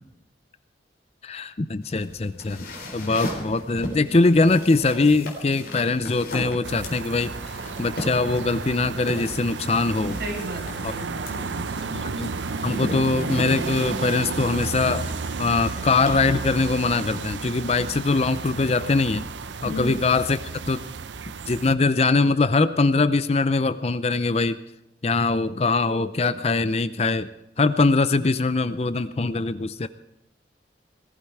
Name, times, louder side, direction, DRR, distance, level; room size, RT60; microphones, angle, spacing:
voice 1, 1.2-2.7 2.9-7.3 7.8-10.2 10.8-10.9 11.9-12.3 12.6-15.0 15.4-19.2 19.6-20.4 20.7-20.8 21.5-24.6 25.0-27.3 27.6-29.9, left 3 dB, 35° left, 13 dB, 0.5 m, -22 dB
sound 1, 1.8-16.2, left 1 dB, 55° left, 3.9 m, -37 dB
sound 2, 6.6-21.7, right 4 dB, 80° right, 0.6 m, -32 dB
sound 3, 7.5-15.6, right 1 dB, 35° right, 3.3 m, -48 dB
voice 2, 10.2-11.9 19.6-20.0, right 1 dB, 60° right, 0 dB, 5.8 m, -34 dB
19.0 x 15.0 x 4.7 m, 0.84 s
head